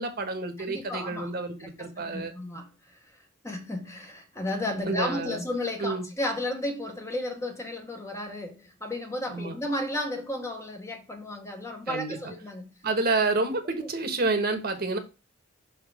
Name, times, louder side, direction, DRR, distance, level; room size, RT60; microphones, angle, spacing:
voice 1, 0.0-2.3 4.8-5.4 5.8-6.1 9.3-9.6 11.9-12.3 12.8-15.0, right 3 dB, 50° right, 1.3 m, -29 dB
voice 2, 0.7-1.3 1.6-2.7 3.4-12.7, left 1 dB, 15° left, 1.1 m, -33 dB
6.2 x 3.7 x 4.9 m
head